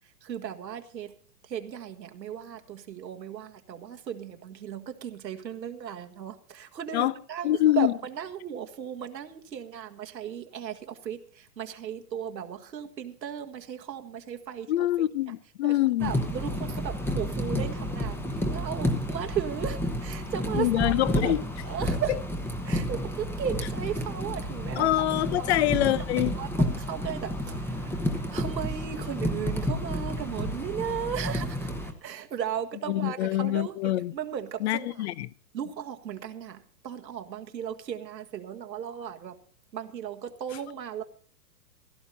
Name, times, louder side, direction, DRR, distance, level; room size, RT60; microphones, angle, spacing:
voice 1, 0.2-1.1 1.5-15.1 15.6-18.2 18.5-21.3 21.6-22.2 22.7-25.1 25.3-25.6 26.3-28.0 28.3-31.7 32.0-35.0 35.5-39.3 39.7-41.0, right 9 dB, 85° right, 1.7 m, -36 dB
voice 2, 7.4-7.9 14.7-16.1 20.6-21.4 24.8-26.3 32.9-34.1 34.6-35.3, left 14 dB, 40° left, 0.7 m, -25 dB
sound 1, 16.0-31.9, equal, 5° left, 1.0 m, -31 dB
16.0 x 13.0 x 4.1 m
hypercardioid pair, 145°, 49 cm